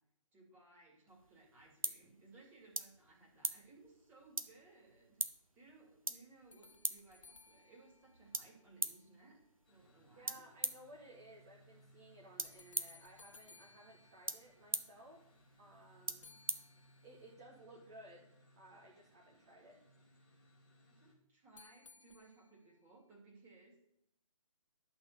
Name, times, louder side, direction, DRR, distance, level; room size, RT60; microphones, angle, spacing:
voice 1, 0.3-5.2 5.5-9.4 9.7-10.4 20.9-23.9, right 3 dB, 10° right, -3 dB, 3.0 m, -62 dB
sound 1, 1.1-17.3, right 2 dB, 85° right, 1.1 m, -45 dB
sound 2, 6.5-8.9 12.4-14.9 16.2-17.4 21.6-22.8, left 4 dB, 65° left, 0.9 m, -62 dB
sound 3, 9.6-21.1, equal, 5° left, 2.4 m, -67 dB
voice 2, 10.2-15.2 15.6-16.4 17.0-19.8, right 1 dB, 25° right, -4 dB, 1.8 m, -58 dB
12.0 x 4.5 x 7.0 m, 0.78 s
figure-of-eight pair, 140°, 17 cm